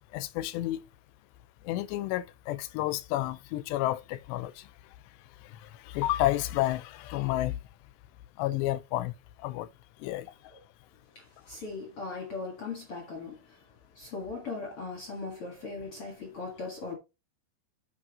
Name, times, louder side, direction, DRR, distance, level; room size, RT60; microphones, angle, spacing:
voice 1, 0.1-0.8 1.7-4.7 5.9-7.6 8.4-9.1 9.4-9.7 10.0-10.3, left 15 dB, 85° left, 2.9 m, -30 dB
voice 2, 11.2-13.6 14.0-16.9, left 3 dB, 45° left, 2.0 m, -39 dB
8.8 x 6.0 x 3.0 m
omnidirectional pair, 4.9 m